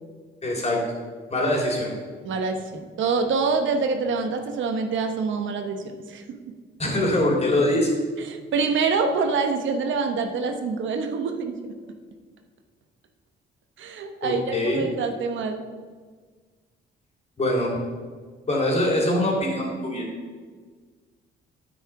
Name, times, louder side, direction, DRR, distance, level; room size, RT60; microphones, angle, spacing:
voice 1, 0.4-0.8 1.3-1.9 6.8-7.9 14.2-14.8 17.4-17.8 18.5-20.0, left 1 dB, 35° left, -1 dB, 3.3 m, -23 dB
voice 2, 2.2-6.4 8.3-11.7 13.8-15.6, right 4 dB, 75° right, 6 dB, 1.1 m, -26 dB
9.0 x 9.0 x 4.7 m, 1.5 s
cardioid pair, 90°, 20 cm